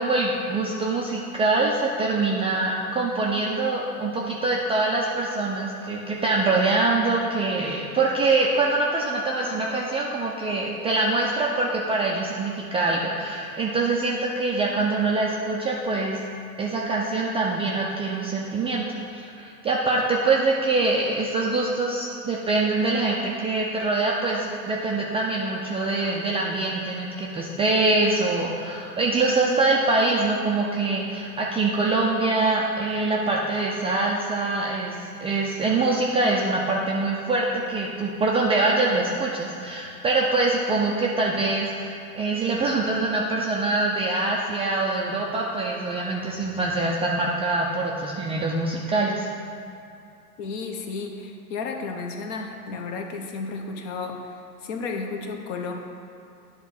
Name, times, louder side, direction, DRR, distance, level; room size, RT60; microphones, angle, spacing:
voice 1, 0.0-16.2 16.6-18.9 19.1-35.0 35.2-49.3, right 3 dB, 15° right, -3 dB, 0.4 m, -24 dB
voice 2, 50.4-55.7, left 4 dB, 50° left, 3 dB, 1.1 m, -33 dB
9.8 x 3.6 x 5.8 m, 2.6 s
hypercardioid pair, 100°, 47 cm